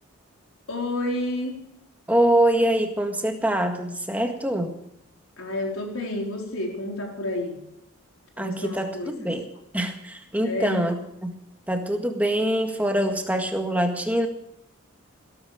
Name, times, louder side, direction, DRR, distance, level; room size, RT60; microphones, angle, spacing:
voice 1, 0.7-1.5 5.4-7.6 8.4-9.3 10.4-10.9, left 1 dB, 80° left, 1 dB, 4.4 m, -30 dB
voice 2, 2.1-4.7 8.4-9.5 9.7-11.0 11.2-11.3 11.7-14.3, right 1 dB, 5° right, 4 dB, 1.7 m, -24 dB
16.5 x 13.5 x 5.1 m, 0.80 s
head